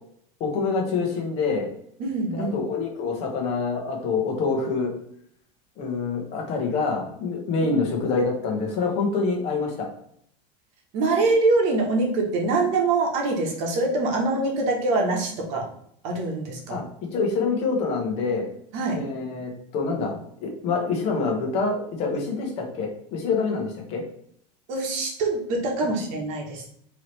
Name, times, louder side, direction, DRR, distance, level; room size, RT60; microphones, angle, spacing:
voice 1, 0.4-1.7 2.3-4.9 5.8-9.9 16.7-16.8 17.1-18.5 18.9-24.0, left 4 dB, 40° left, 1 dB, 1.1 m, -26 dB
voice 2, 2.0-2.5 7.6-7.7 10.9-15.7 16.0-16.8 18.7-19.0 24.7-26.7, right 3 dB, 45° right, 1 dB, 1.1 m, -24 dB
4.7 x 3.0 x 3.1 m, 0.68 s
supercardioid pair, 170°, 17 cm